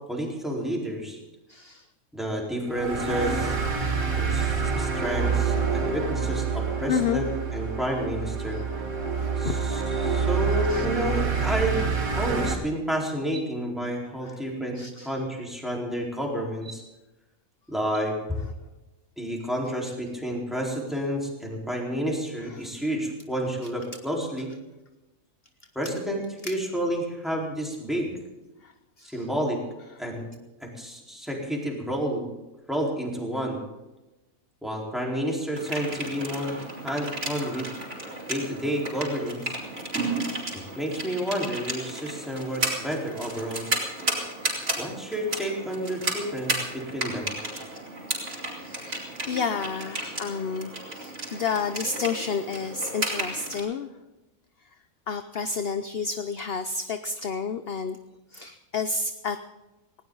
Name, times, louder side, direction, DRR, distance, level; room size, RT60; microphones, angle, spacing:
voice 1, 0.1-1.2 2.1-3.5 4.1-8.6 9.4-11.8 12.1-16.7 17.7-18.4 19.2-24.5 25.7-28.2 29.0-29.6 30.0-30.3 30.6-32.3 32.7-33.6 34.6-37.7 38.3-39.6 40.5-43.7 44.8-47.3, equal, ahead, -2 dB, 4.3 m, -30 dB
voice 2, 1.5-1.9 3.8-4.0 6.9-7.3 9.2-9.6 10.7-10.9 13.3-13.4 14.2-14.4 14.7-15.1 16.6-17.0 17.9-18.0 22.4-22.7 26.4-26.6 28.6-29.3 48.6-53.9 54.6-54.7 55.1-58.0 58.3-59.4, left 5 dB, 50° left, 9 dB, 0.9 m, -31 dB
sound 1, 2.7-12.5, right 5 dB, 80° right, 2.2 m, -27 dB
sound 2, 35.6-53.6, right 2 dB, 60° right, 4.4 m, -33 dB
19.5 x 17.5 x 4.0 m, 1.0 s
omnidirectional pair, 1.4 m